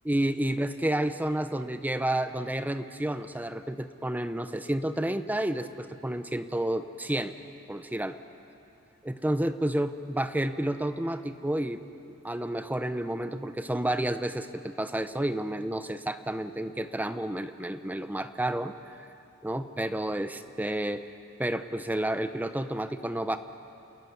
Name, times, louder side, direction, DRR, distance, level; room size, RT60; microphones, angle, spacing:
voice 1, 0.1-7.3 7.7-8.1 9.0-11.8 12.1-18.7 19.4-21.1 21.4-23.4, right 1 dB, 10° right, 10 dB, 0.6 m, -30 dB
28.5 x 14.0 x 9.5 m, 2.7 s
head